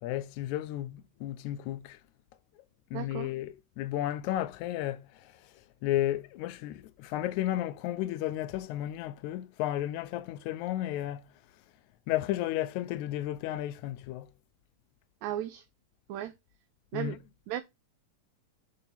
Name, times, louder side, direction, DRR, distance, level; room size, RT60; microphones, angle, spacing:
voice 1, 0.0-2.0 2.9-5.3 5.8-11.3 12.1-14.3 16.9-17.2, left 13 dB, 80° left, 1.9 m, -33 dB
voice 2, 2.9-3.3 15.2-15.6 16.1-16.3 16.9-17.2 17.5-17.6, right 12 dB, 80° right, 2.0 m, -35 dB
5.7 x 4.4 x 5.8 m
omnidirectional pair, 3.4 m